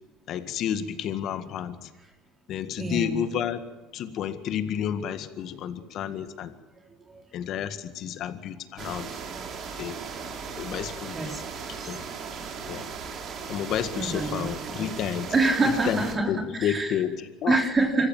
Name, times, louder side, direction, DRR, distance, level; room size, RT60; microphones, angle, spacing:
voice 1, 0.3-1.9 2.5-3.7 3.9-6.5 7.3-9.1 9.8-10.0 10.6-11.3 11.9-12.0 12.7-12.9 13.5-15.3 15.9-17.6, left 9 dB, 55° left, 10 dB, 1.8 m, -30 dB
voice 2, 2.8-3.2 7.1-7.2 9.7-9.8 11.1-11.4 11.8-11.9 13.9-14.9 15.3-17.0 17.5-18.1, right 3 dB, 25° right, 2 dB, 3.2 m, -26 dB
sound 1, 8.8-16.2, right 5 dB, 45° right, 3.4 m, -37 dB
26.0 x 14.5 x 7.3 m, 1.1 s
supercardioid pair, 110°, 0 cm